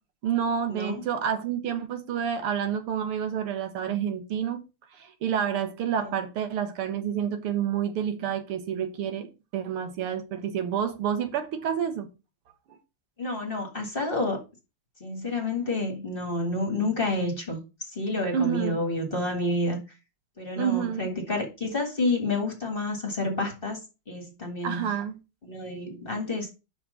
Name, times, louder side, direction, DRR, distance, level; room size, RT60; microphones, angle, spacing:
voice 1, 0.2-4.6 5.0-9.3 9.5-12.1 18.3-18.8 20.6-21.1 24.6-25.1, right 8 dB, 90° right, 2.1 m, -29 dB
voice 2, 13.2-14.4 15.0-19.8 20.4-23.8 24.1-24.9 25.4-26.5, left 2 dB, 25° left, 1.8 m, -29 dB
5.9 x 5.0 x 6.3 m
omnidirectional pair, 2.4 m